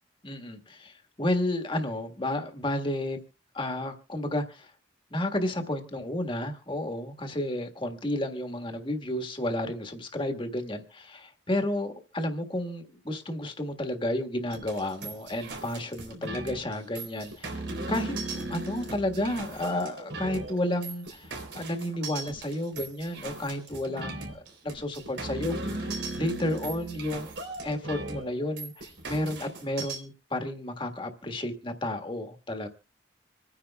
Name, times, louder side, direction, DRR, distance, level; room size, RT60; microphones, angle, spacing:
voice 1, 0.2-3.2 3.5-4.7 5.1-27.3 27.6-32.7, left 1 dB, 25° left, 6 dB, 1.5 m, -32 dB
sound 1, 14.5-30.0, right 2 dB, 90° right, 3.6 m, -38 dB
26.5 x 9.9 x 2.3 m, 0.30 s
head